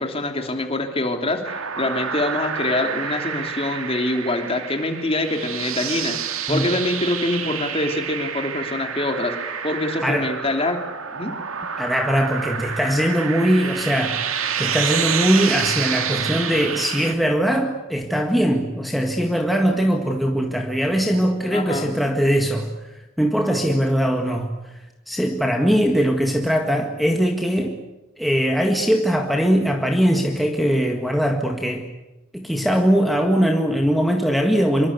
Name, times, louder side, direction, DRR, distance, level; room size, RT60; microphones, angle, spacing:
voice 1, 0.0-6.2 6.5-10.8 11.1-11.3 21.5-21.9, left 2 dB, 25° left, 5 dB, 3.1 m, -25 dB
sound 1, 1.4-17.1, right 7 dB, 80° right, 2.3 m, -28 dB
voice 2, 11.8-24.5 25.1-27.8 28.2-31.9 32.3-34.9, equal, ahead, 2 dB, 1.8 m, -21 dB
26.0 x 24.0 x 8.2 m, 1.0 s
head